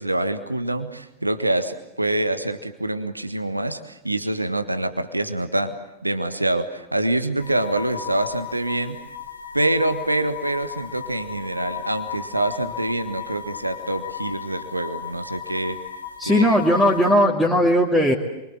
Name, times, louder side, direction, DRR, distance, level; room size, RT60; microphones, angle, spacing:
voice 1, 0.0-5.8 6.0-9.0 9.5-15.8 16.2-16.6, right 1 dB, 85° right, 9 dB, 1.5 m, -25 dB
sound 1, 7.4-17.1, left 7 dB, 75° left, 2.2 m, -35 dB
voice 2, 16.2-18.1, equal, 5° right, -2 dB, 2.7 m, -18 dB
27.5 x 24.5 x 7.6 m, 0.94 s
figure-of-eight pair, 90°, 0 cm